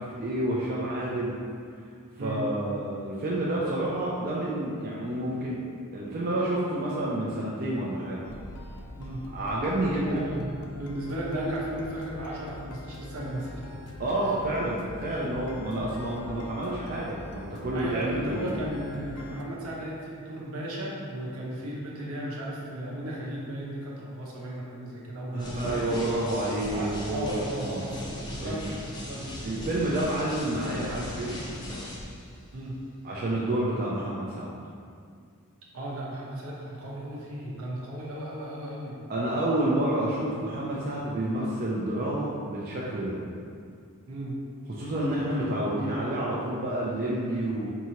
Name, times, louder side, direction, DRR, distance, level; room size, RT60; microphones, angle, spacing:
voice 1, 0.0-1.3 2.2-5.6 5.9-8.2 9.3-10.3 14.0-18.5 25.3-27.8 28.4-28.6 29.4-31.3 33.0-34.5 39.1-43.2 44.7-47.7, right 1 dB, 40° right, -6 dB, 0.4 m, -29 dB
sound 1, 8.2-19.4, left 1 dB, 85° left, 0.4 m, -43 dB
voice 2, 10.0-13.6 17.7-25.9 26.7-28.0 28.3-28.6 28.9-29.7 32.5-32.8 35.7-39.0 44.1-44.4, right 1 dB, 70° right, -4 dB, 0.8 m, -35 dB
sound 2, 25.4-32.3, left 1 dB, 20° left, 0.5 m, -38 dB
4.6 x 2.7 x 2.9 m, 2.3 s
head